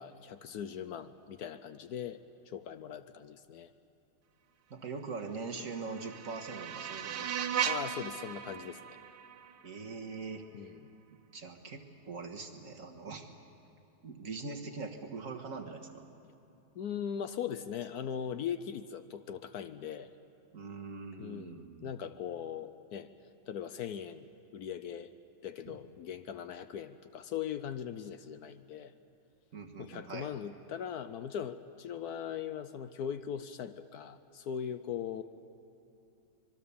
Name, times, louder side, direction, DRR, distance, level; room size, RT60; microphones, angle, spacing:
voice 1, 0.0-3.7 7.6-9.0 10.5-10.8 16.8-20.1 21.2-23.1 23.5-24.3 24.5-25.1 25.4-28.9 29.8-35.2, left 8 dB, 70° left, 11 dB, 1.1 m, -40 dB
voice 2, 4.7-7.5 9.6-10.7 11.3-13.3 14.0-16.1 20.5-21.9 25.7-25.8 29.5-30.3, right 4 dB, 50° right, 3 dB, 1.8 m, -42 dB
sound 1, 5.3-10.3, right 8 dB, 65° right, 1.4 m, -38 dB
25.5 x 22.5 x 7.0 m, 2.9 s
omnidirectional pair, 1.9 m